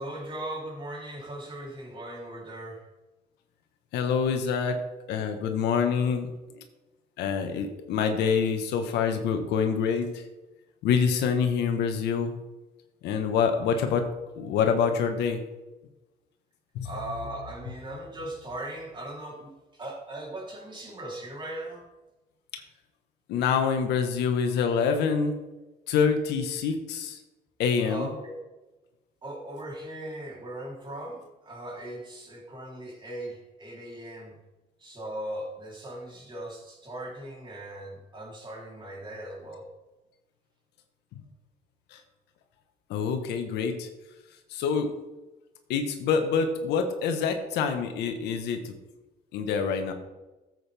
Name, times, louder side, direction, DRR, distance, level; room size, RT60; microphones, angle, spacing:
voice 1, 0.0-2.8 16.8-21.9 27.8-28.4 29.2-34.4 34.8-39.7, right 1 dB, 30° right, -2 dB, 3.6 m, -39 dB
voice 2, 3.9-4.8 5.1-6.3 7.2-10.2 10.8-12.3 13.0-14.0 14.4-15.4 16.7-16.9 23.3-25.4 25.9-27.2 27.6-28.1 41.9-42.0 42.9-43.9 44.5-44.9 45.7-48.7 49.3-49.9, left 6 dB, 85° left, 6 dB, 1.4 m, -26 dB
13.5 x 8.0 x 3.5 m, 1.1 s
cardioid pair, 110°, 17 cm